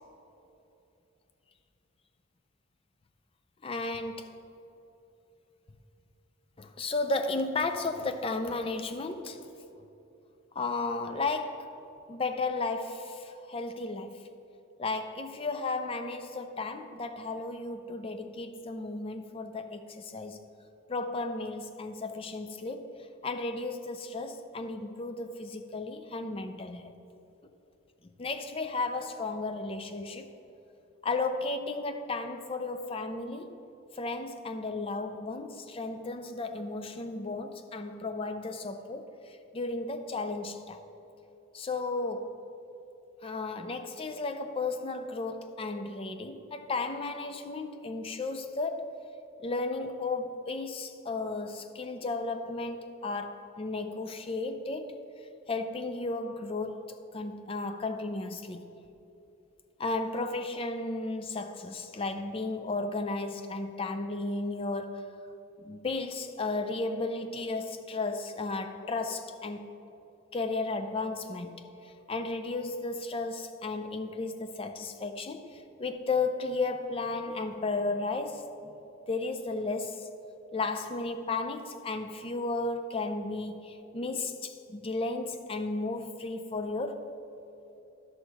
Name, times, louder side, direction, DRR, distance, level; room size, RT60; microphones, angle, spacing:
voice 1, 3.6-4.3 6.6-9.5 10.6-11.8 12.1-14.2 14.8-20.4 20.9-26.9 28.2-30.3 31.0-33.6 33.9-40.8 41.5-42.3 43.2-49.0 49.4-55.0 55.5-56.9 57.1-58.7 59.8-65.1 65.6-69.7 70.3-78.7 79.1-80.1 80.5-87.2, left 3 dB, 25° left, 0.4 m, -34 dB
11.0 x 6.3 x 4.6 m
head